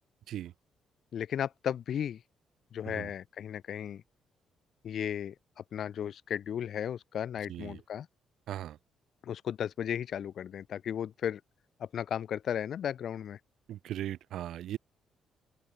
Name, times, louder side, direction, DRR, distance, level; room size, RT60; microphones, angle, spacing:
voice 1, 1.1-2.2 2.7-4.0 4.8-8.1 9.2-11.4 11.8-13.4, left 9 dB, 65° left, 1.4 m, -35 dB
voice 2, 7.5-7.8 8.5-8.8 13.7-14.8, right 12 dB, 75° right, 1.4 m, -38 dB
open air
cardioid pair, 90°, 0 cm